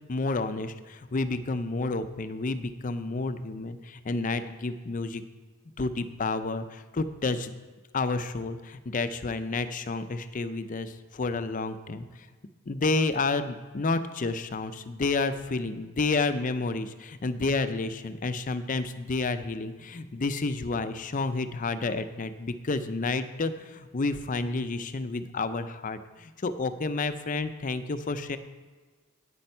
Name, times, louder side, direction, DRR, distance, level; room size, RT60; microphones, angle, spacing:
voice 1, 0.1-5.2 5.8-7.5 7.9-12.1 12.7-28.4, left 3 dB, 40° left, 11 dB, 0.5 m, -30 dB
9.0 x 8.8 x 5.4 m, 1.4 s
head